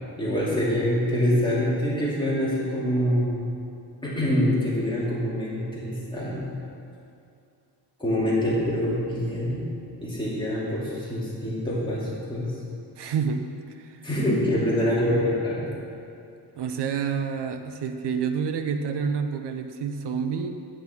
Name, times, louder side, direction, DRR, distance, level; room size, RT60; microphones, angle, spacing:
voice 1, 0.2-3.5 4.0-6.4 8.0-9.6 10.0-12.5 14.0-15.7, equal, 10° left, -8 dB, 2.6 m, -25 dB
voice 2, 13.0-13.5 13.7-14.0 16.6-20.5, right 6 dB, 65° right, 7 dB, 0.8 m, -28 dB
9.6 x 9.1 x 4.5 m, 2.5 s
cardioid pair, 135°, 44 cm